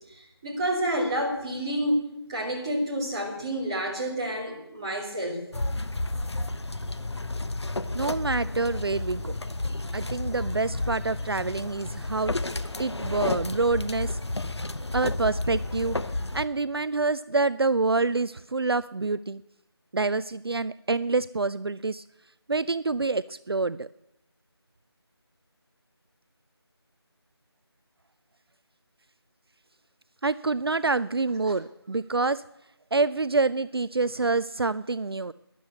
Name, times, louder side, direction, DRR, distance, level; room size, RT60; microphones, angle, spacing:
voice 1, 0.1-2.0 2.3-5.4 31.5-31.6, right 1 dB, 15° right, -5 dB, 2.5 m, -29 dB
sound 1, 5.5-16.5, left 2 dB, 80° left, 1.0 m, -31 dB
voice 2, 7.9-9.3 9.9-12.3 12.8-14.2 14.9-16.0 16.3-19.4 19.9-22.0 22.5-23.9 30.2-32.4 32.9-35.3, right 3 dB, 65° right, 16 dB, 0.4 m, -27 dB
12.5 x 10.5 x 8.2 m, 0.85 s
figure-of-eight pair, 170°, 14 cm